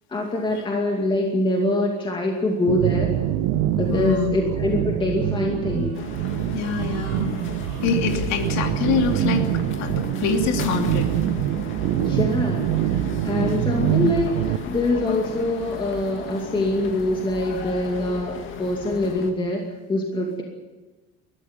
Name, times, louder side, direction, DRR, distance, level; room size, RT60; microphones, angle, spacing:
voice 1, 0.1-3.1 3.8-5.9 12.0-20.4, left 1 dB, 15° left, 0 dB, 2.4 m, -24 dB
sound 1, 2.7-14.6, right 12 dB, 65° right, 1.2 m, -25 dB
voice 2, 3.9-4.3 6.5-7.3 7.8-9.4 9.8-11.1, left 6 dB, 55° left, 4 dB, 3.0 m, -25 dB
sound 2, 5.9-19.3, left 5 dB, 35° left, 2.2 m, -36 dB
20.5 x 13.5 x 9.9 m, 1.2 s
cardioid pair, 160°, 33 cm